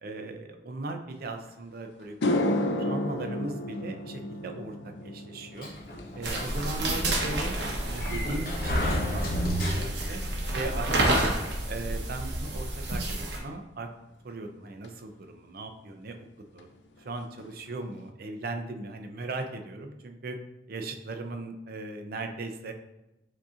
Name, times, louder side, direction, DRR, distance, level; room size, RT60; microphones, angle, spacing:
voice 1, 0.0-2.1 2.8-4.7 5.0-5.7 6.2-7.5 7.9-9.4 9.7-10.2 10.5-11.3 11.7-13.9 14.2-16.2 16.5-16.7 17.0-20.4 20.7-22.7, right 2 dB, 55° right, 5 dB, 0.5 m, -37 dB
sound 1, 1.5-1.6 2.0-10.5 10.8-11.2 14.8-14.9 16.6-16.7 17.0-17.1 17.4-17.9, left 1 dB, 80° left, 0.5 m, -34 dB
Sliding door, 5.6-10.2, equal, 55° left, 0.8 m, -32 dB
sound 2, 6.2-13.4, right 1 dB, 80° right, 0.9 m, -30 dB
7.4 x 2.7 x 2.4 m, 0.95 s
head